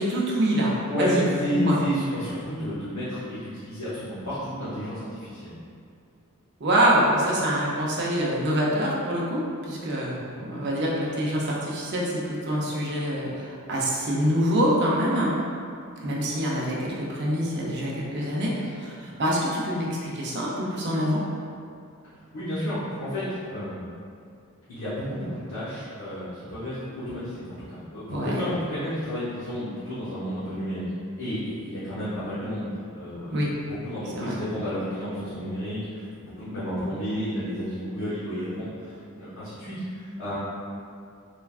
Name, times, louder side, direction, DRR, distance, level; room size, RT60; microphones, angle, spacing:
voice 1, 0.0-0.7 1.0-1.2 1.5-1.8 6.6-15.3 16.0-21.2 28.1-28.4 33.3-33.5 34.2-34.3, equal, 50° right, -4 dB, 0.5 m, -25 dB
voice 2, 0.9-5.5 22.3-23.9 24.7-30.8 31.2-32.6 32.9-40.4, equal, 90° left, -13 dB, 0.8 m, -31 dB
3.3 x 2.2 x 2.3 m, 2.4 s
head